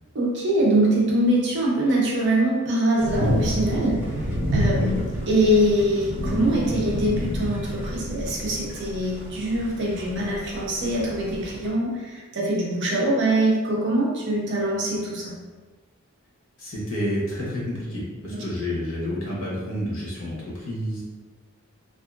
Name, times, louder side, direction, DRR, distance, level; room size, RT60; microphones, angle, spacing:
voice 1, 0.1-4.3 4.5-15.4 18.3-18.4, right 1 dB, 55° right, -3 dB, 0.6 m, -23 dB
sound 1, 3.0-11.7, equal, 10° right, 0.7 m, -29 dB
voice 2, 16.6-21.0, equal, 65° left, -6 dB, 1.0 m, -29 dB
2.7 x 2.4 x 2.4 m, 1.4 s
head